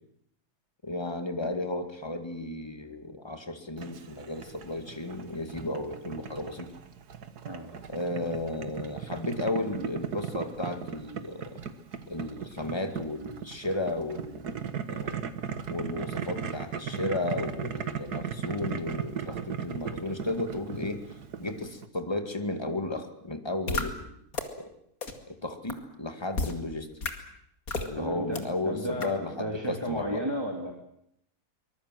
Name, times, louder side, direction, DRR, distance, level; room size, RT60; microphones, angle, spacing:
voice 1, 0.8-6.7 7.9-11.6 12.1-15.2 15.7-21.0 21.4-24.2 24.6-24.7 25.3-26.9 27.8-30.2, left 2 dB, 15° left, 7 dB, 2.1 m, -34 dB
Boiling, 3.8-21.9, right 7 dB, 75° right, 1.9 m, -37 dB
voice 2, 7.4-7.8 28.0-30.7, equal, 15° right, 2 dB, 2.6 m, -34 dB
sound 1, 23.7-23.8 24.3-24.4 25.0-25.1 25.7-25.8 26.3-26.5 27.0-27.1 27.7-27.9 28.3-28.4 29.0-29.1, left 3 dB, 60° left, 2.7 m, -30 dB
24.0 x 21.5 x 7.8 m, 0.73 s
omnidirectional pair, 1.7 m